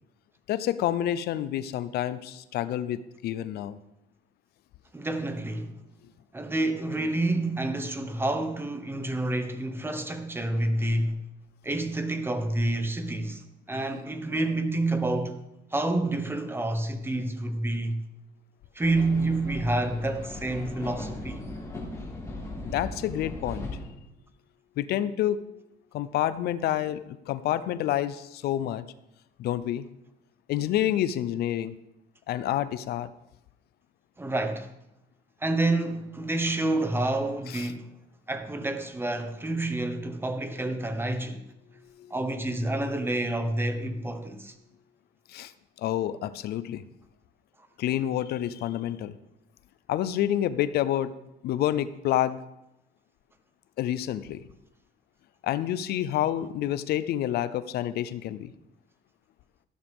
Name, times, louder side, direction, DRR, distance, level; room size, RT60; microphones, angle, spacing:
voice 1, 0.5-3.8 22.6-23.7 24.8-25.4 25.9-28.8 29.4-29.9 30.5-31.7 32.3-33.1 37.5-37.7 45.3-45.5 45.8-46.8 47.8-49.1 49.9-51.1 51.4-52.4 53.8-54.4 55.4-58.5, left 12 dB, 70° left, 0.6 m, -28 dB
voice 2, 4.9-5.8 6.3-11.3 11.6-13.4 13.7-15.4 15.7-18.0 18.7-21.4 34.2-34.7 35.4-37.9 38.3-41.4 42.1-44.5, right 2 dB, 15° right, 1.2 m, -28 dB
sound 1, 18.8-23.9, left 2 dB, 20° left, 4.2 m, -38 dB
14.0 x 12.0 x 3.6 m
cardioid pair, 110°, 17 cm